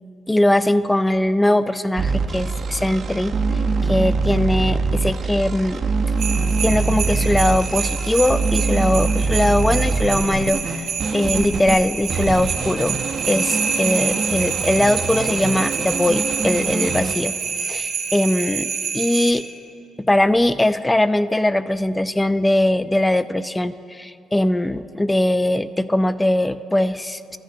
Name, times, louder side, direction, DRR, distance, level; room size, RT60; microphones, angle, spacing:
voice 1, 0.3-3.4 3.9-5.8 6.6-10.9 11.1-13.0 13.3-19.4 20.0-27.4, left 1 dB, 10° left, 14 dB, 0.3 m, -20 dB
sound 1, 2.0-11.8 12.1-17.1, right 4 dB, 50° right, 0.6 m, -24 dB
sound 2, 6.2-19.3, right 6 dB, 75° right, 1.8 m, -27 dB
14.5 x 10.0 x 2.5 m, 2.5 s
cardioid pair, 90°, 0 cm